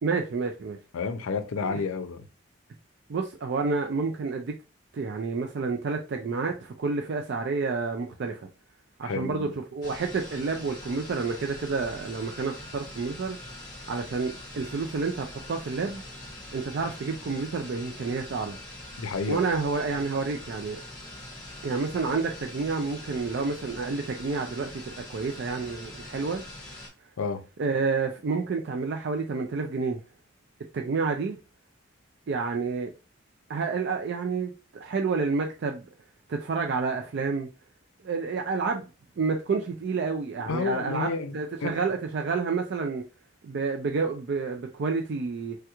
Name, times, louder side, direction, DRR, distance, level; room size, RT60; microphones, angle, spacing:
voice 1, 0.0-0.8 1.7-1.8 3.1-4.5 4.9-8.4 9.0-13.4 13.9-16.0 16.5-18.6 19.3-20.8 21.6-26.4 27.6-30.0 30.7-31.4 32.3-32.9 33.5-35.8 36.3-37.5 38.0-38.8 39.2-43.0 43.4-45.6, right 4 dB, 55° right, 0.3 m, -29 dB
voice 2, 0.9-2.2 9.0-9.5 19.0-19.5 27.2-27.4 40.5-41.4 41.6-41.7, left 4 dB, 85° left, 0.4 m, -30 dB
sound 1, 9.8-26.9, left 1 dB, 20° left, 1.0 m, -43 dB
3.3 x 2.3 x 2.8 m
head